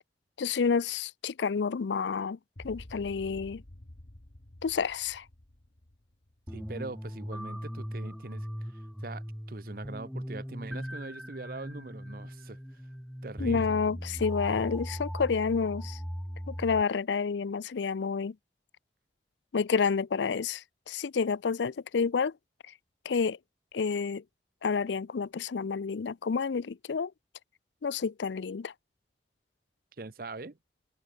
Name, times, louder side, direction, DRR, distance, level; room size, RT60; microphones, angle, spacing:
voice 1, 0.4-2.4 2.6-3.6 4.6-5.2 13.4-16.0 16.5-18.3 19.5-22.3 23.1-23.4 23.7-24.2 24.6-27.1 27.8-28.7, left 5 dB, 85° left, 0.5 m, -29 dB
sound 1, 2.6-6.9, left 1 dB, 55° left, 1.6 m, -50 dB
sound 2, 6.5-16.8, equal, ahead, 0.4 m, -39 dB
voice 2, 6.5-12.6 13.2-13.7 30.0-30.6, right 3 dB, 55° right, 0.8 m, -42 dB
open air
head